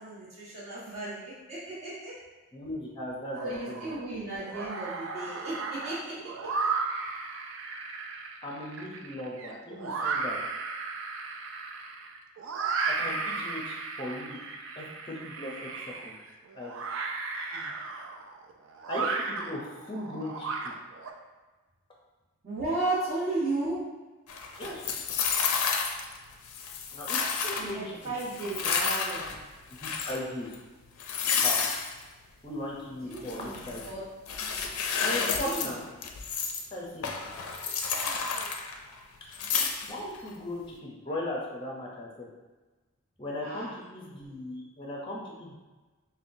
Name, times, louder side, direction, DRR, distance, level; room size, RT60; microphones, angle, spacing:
voice 1, 0.0-2.2 3.4-6.1 17.5-17.7 22.4-23.8 27.5-29.3 33.0-34.0 35.3-35.7 37.6-38.6 43.4-43.8, right 2 dB, 30° right, -10 dB, 1.3 m, -35 dB
voice 2, 2.5-3.9 8.4-10.4 12.9-14.4 14.8-15.7 16.0-16.1 16.6-16.7 18.9-20.7 24.6-24.8 26.9-28.1 29.7-30.5 31.4-31.6 32.4-33.8 35.0-35.8 36.7-37.1 39.9-42.3 43.2-45.6, left 1 dB, 20° left, -3 dB, 0.6 m, -37 dB
sound 1, 3.3-4.0 4.4-21.1, right 4 dB, 60° right, 0.4 m, -35 dB
sound 2, 24.3-26.2 26.4-27.7 28.2-29.4 29.7-30.2 30.5-30.6 31.0-31.9 33.1-33.9 34.3-35.7 36.0-36.7 37.0-39.0 39.3-40.2, left 6 dB, 85° left, 0.4 m, -30 dB
5.4 x 2.2 x 2.6 m, 1.2 s
head